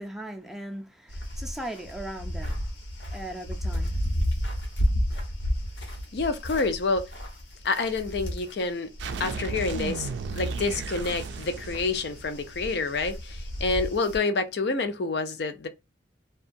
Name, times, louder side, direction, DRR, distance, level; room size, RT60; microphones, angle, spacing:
voice 1, 0.0-2.7 3.1-4.0, right 1 dB, ahead, 0.4 m, -38 dB
sound 1, 1.1-9.3 9.6-14.2, equal, 85° left, 1.0 m, -32 dB
voice 2, 6.1-7.1 7.6-8.9 9.2-10.1 10.4-15.7, left 3 dB, 60° left, 0.4 m, -28 dB
sound 2, 9.0-12.7, right 4 dB, 75° right, 0.3 m, -34 dB
2.6 x 2.3 x 2.5 m
head